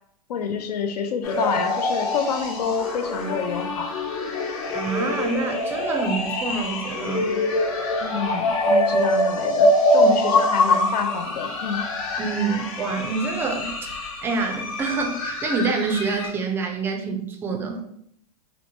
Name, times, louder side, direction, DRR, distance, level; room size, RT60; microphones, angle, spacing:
voice 1, 0.3-3.9 7.9-11.8, left 5 dB, 85° left, 7 dB, 0.5 m, -28 dB
sound 1, 1.2-16.3, left 1 dB, 60° left, 1.0 m, -24 dB
voice 2, 4.7-7.4 10.0-10.1 12.2-13.9 14.2-17.8, right 4 dB, 10° right, 2 dB, 0.3 m, -27 dB
2.9 x 2.1 x 2.7 m, 0.70 s
hypercardioid pair, 135°, 20 cm